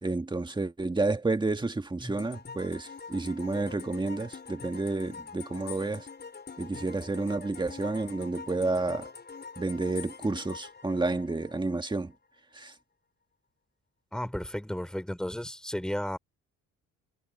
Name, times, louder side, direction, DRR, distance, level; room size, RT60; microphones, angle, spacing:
voice 1, 0.0-6.1 6.6-9.1 9.6-12.1 12.5-12.7, right 3 dB, 15° right, 1.9 m, -30 dB
sound 1, 2.2-11.9, left 5 dB, 35° left, 6.4 m, -45 dB
voice 2, 14.1-16.2, equal, ahead, 4.6 m, -33 dB
cardioid pair, 90°, 30 cm